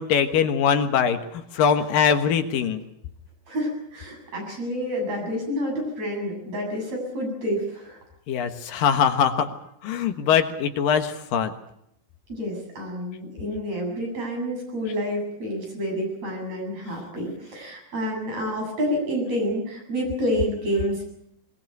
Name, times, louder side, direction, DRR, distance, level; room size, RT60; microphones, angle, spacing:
voice 1, 0.0-2.8 8.3-9.5 9.8-11.5, left 7 dB, 80° left, 8 dB, 3.1 m, -22 dB
voice 2, 3.5-8.0 12.3-21.1, equal, 50° right, 1 dB, 9.0 m, -28 dB
22.0 x 21.0 x 8.0 m, 0.76 s
omnidirectional pair, 3.9 m